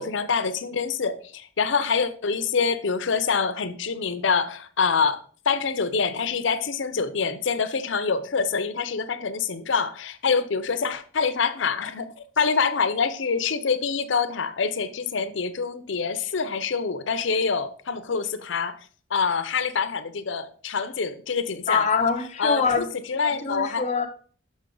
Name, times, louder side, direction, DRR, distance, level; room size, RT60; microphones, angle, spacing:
voice 1, 0.0-18.8 19.1-21.9 22.4-23.8, left 5 dB, 70° left, 0.6 m, -26 dB
voice 2, 21.7-22.9 23.2-24.1, left 5 dB, 35° left, 0.8 m, -24 dB
6.3 x 6.0 x 3.8 m
head